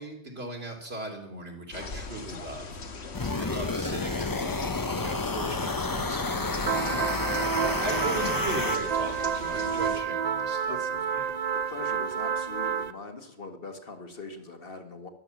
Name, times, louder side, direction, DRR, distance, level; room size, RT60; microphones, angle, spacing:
voice 1, 0.0-2.8 3.4-11.3, right 1 dB, 70° right, 1 dB, 3.5 m, -39 dB
sound 1, 1.7-10.0, left 3 dB, 85° left, 1.6 m, -40 dB
sound 2, 3.1-8.8, left 3 dB, 25° left, 0.6 m, -30 dB
sound 3, 6.7-12.9, right 7 dB, 45° right, 0.6 m, -29 dB
voice 2, 10.7-11.0 11.7-15.1, left 2 dB, 60° left, 5 dB, 1.9 m, -41 dB
13.0 x 12.0 x 7.3 m, 0.79 s
omnidirectional pair, 1.1 m